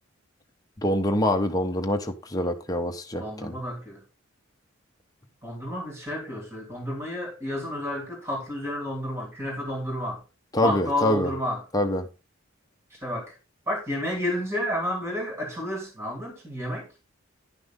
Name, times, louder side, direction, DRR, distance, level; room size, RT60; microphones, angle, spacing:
voice 1, 0.8-3.6 10.5-11.3 11.7-12.1, left 1 dB, 15° left, 1.0 m, -25 dB
voice 2, 3.2-4.0 5.4-10.2 10.6-11.6 13.0-13.3 13.7-16.9, left 1 dB, 10° right, 2.8 m, -31 dB
11.0 x 6.0 x 3.7 m
head